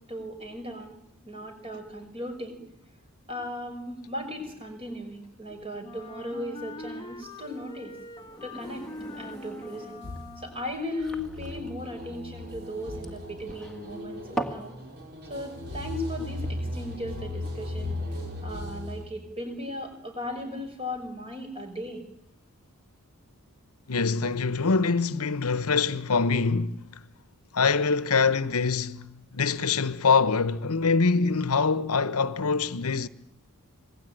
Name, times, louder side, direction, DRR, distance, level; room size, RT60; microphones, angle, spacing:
voice 1, 0.1-1.0 1.2-2.6 3.3-7.9 8.4-8.9 9.2-10.0 10.4-14.7 15.3-18.0 18.4-22.0, left 1 dB, 25° right, 5.8 m, -37 dB
Wind instrument woodwind instrument, 5.8-10.9, left 2 dB, 20° left, 1.3 m, -43 dB
sound 1, 8.2-14.7, right 2 dB, ahead, 2.0 m, -40 dB
sound 2, 10.0-19.0, left 1 dB, 50° right, 5.6 m, -37 dB
voice 2, 23.9-26.8 27.5-33.1, left 4 dB, 85° left, 1.0 m, -24 dB
26.5 x 19.5 x 9.2 m
head